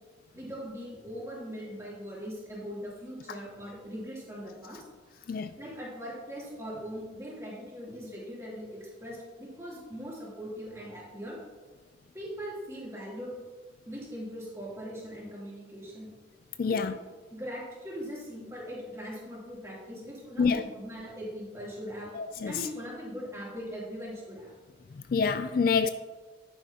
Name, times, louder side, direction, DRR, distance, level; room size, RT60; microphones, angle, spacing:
voice 1, 0.3-4.8 5.6-11.4 12.1-13.3 13.8-16.1 16.7-17.0 17.3-22.1 22.5-24.6, equal, 15° right, -6 dB, 2.9 m, -40 dB
voice 2, 16.6-17.0 20.4-20.6 22.2-22.5 25.1-25.9, left 5 dB, 50° left, 11 dB, 0.3 m, -26 dB
10.5 x 9.2 x 2.9 m, 1.3 s
head